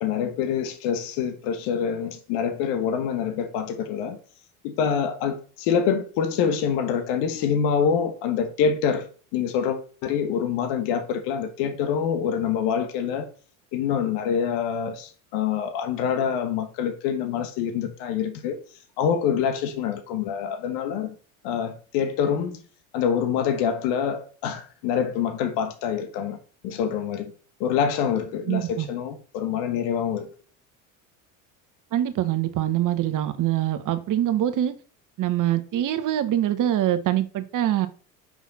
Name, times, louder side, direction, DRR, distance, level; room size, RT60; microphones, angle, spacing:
voice 1, 0.0-4.2 4.6-13.3 13.7-18.6 19.0-21.1 21.4-22.6 22.9-26.4 26.6-27.3 27.6-30.3, left 7 dB, 65° left, 1.4 m, -26 dB
voice 2, 28.5-28.9 31.9-34.7 35.2-37.9, right 12 dB, 45° right, 1.1 m, -24 dB
6.2 x 5.5 x 4.1 m
hypercardioid pair, 80°, 44 cm